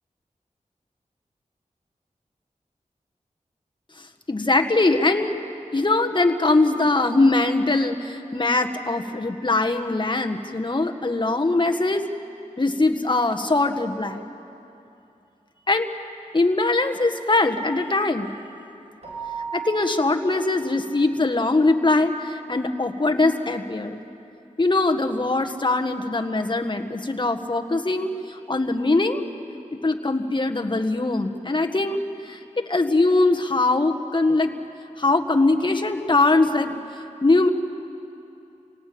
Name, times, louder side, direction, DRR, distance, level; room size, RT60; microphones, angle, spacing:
voice 1, 4.3-5.4 5.7-12.1 12.6-14.2 15.7-15.9 16.3-18.3 19.5-24.0 24.6-29.2 29.7-32.4 32.7-34.5 35.0-36.8 37.2-37.5, left 2 dB, 35° left, 4 dB, 1.7 m, -22 dB
Keyboard (musical), 19.0-21.5, right 7 dB, 55° right, 5.9 m, -37 dB
28.5 x 18.5 x 8.8 m, 2.8 s
cardioid pair, 50°, 13 cm